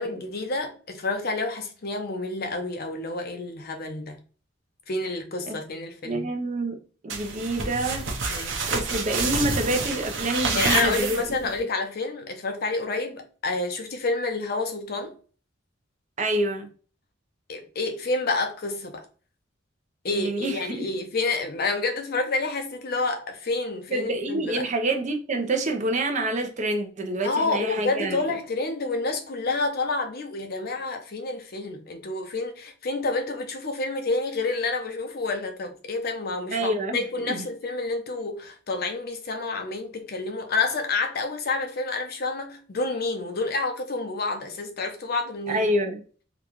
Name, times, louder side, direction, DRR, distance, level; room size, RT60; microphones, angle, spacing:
voice 1, 0.0-4.2 4.9-6.3 8.3-8.6 10.5-15.2 17.5-19.0 20.0-24.6 27.2-45.7, left 3 dB, 55° left, 0.6 m, -29 dB
voice 2, 6.0-6.8 7.0-8.1 8.7-11.2 16.2-16.7 20.1-20.9 23.9-28.2 36.5-37.4 45.5-46.0, right 1 dB, 40° right, 0.6 m, -27 dB
sound 1, 7.1-11.6, right 4 dB, 70° right, 0.8 m, -28 dB
3.8 x 2.3 x 3.0 m
head